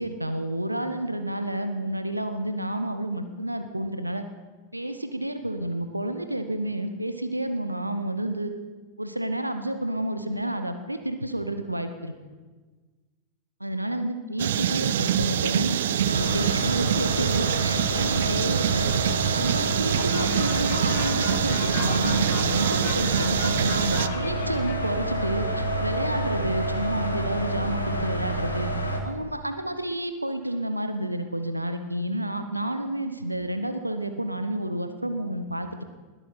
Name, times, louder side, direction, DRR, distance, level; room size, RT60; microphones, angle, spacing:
voice 1, 0.0-4.2 4.7-8.5 9.0-12.1 13.6-18.9 19.3-28.7 29.0-35.8, right 1 dB, 85° right, 9 dB, 0.9 m, -30 dB
sound 1, 14.4-24.1, right 10 dB, 60° right, 0.5 m, -25 dB
sound 2, 16.1-29.0, right 1 dB, 85° left, 1.6 m, -29 dB
sound 3, 20.0-25.1, left 9 dB, 50° left, 1.2 m, -37 dB
20.0 x 8.3 x 5.8 m, 1.3 s
figure-of-eight pair, 90°, 0 cm